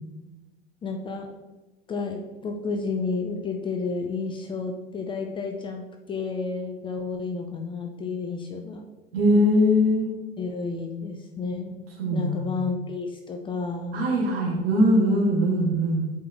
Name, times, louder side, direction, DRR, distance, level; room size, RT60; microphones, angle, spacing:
voice 1, 0.8-1.3 1.9-8.9 10.4-11.7 12.1-14.0, left 4 dB, 15° left, 4 dB, 0.5 m, -31 dB
voice 2, 9.1-10.1 12.0-12.5 13.9-16.1, equal, 65° right, -2 dB, 1.8 m, -21 dB
8.4 x 4.1 x 3.4 m, 1.1 s
figure-of-eight pair, 80°, 31 cm